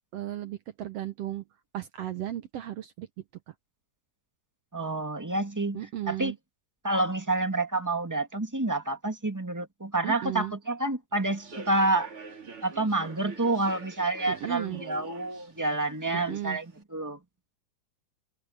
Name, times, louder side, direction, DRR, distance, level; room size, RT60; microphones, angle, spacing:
voice 1, 0.1-1.4 1.7-3.1 3.5-3.6 5.7-6.4 10.0-10.5 14.3-14.8 16.1-16.6, right 12 dB, 65° right, 1.6 m, -35 dB
voice 2, 4.7-6.3 6.8-12.1 12.6-17.2, right 2 dB, 10° right, 1.3 m, -28 dB
Human voice / Subway metro underground, 11.3-16.8, right 3 dB, 40° right, 4.0 m, -46 dB
omnidirectional pair, 3.7 m